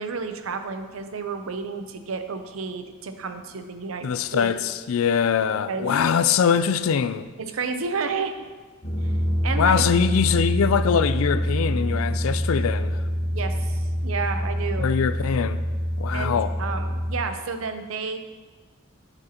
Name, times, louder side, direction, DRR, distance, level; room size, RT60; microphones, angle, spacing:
voice 1, 0.0-4.6 5.7-5.9 7.5-8.3 9.0-9.2 9.4-9.9 13.3-14.9 16.1-18.2, right 5 dB, 80° right, 0.6 m, -31 dB
voice 2, 4.0-7.3 9.6-13.0 14.8-15.6 16.0-16.5, left 7 dB, 80° left, 0.4 m, -23 dB
sound 1, 8.8-17.2, equal, 45° left, 1.5 m, -26 dB
9.0 x 7.9 x 2.9 m
head